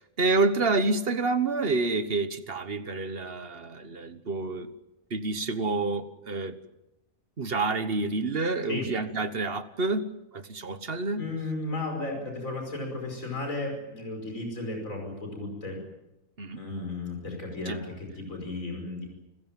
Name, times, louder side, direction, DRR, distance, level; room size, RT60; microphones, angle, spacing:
voice 1, 0.0-4.7 5.1-6.6 7.4-10.0 10.3-11.2 16.4-16.6 17.7-17.8, right 3 dB, 45° right, 12 dB, 1.5 m, -28 dB
voice 2, 11.2-15.8 16.5-19.1, left 2 dB, 65° left, 2 dB, 5.9 m, -34 dB
29.0 x 15.5 x 9.1 m, 0.92 s
omnidirectional pair, 1.5 m